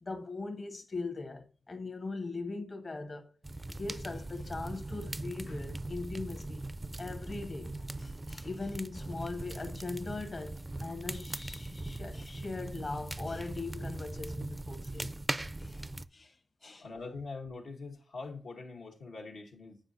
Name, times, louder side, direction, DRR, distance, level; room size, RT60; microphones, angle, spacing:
voice 1, 0.0-3.3 3.8-6.6 7.0-15.1 15.6-16.4 16.6-16.9, left 3 dB, 50° left, 0.9 m, -40 dB
sound 1, 3.4-16.0, right 2 dB, 20° right, 0.4 m, -40 dB
voice 2, 16.8-19.8, left 3 dB, 85° left, 1.1 m, -43 dB
7.8 x 4.9 x 2.6 m
cardioid pair, 55°, 0 cm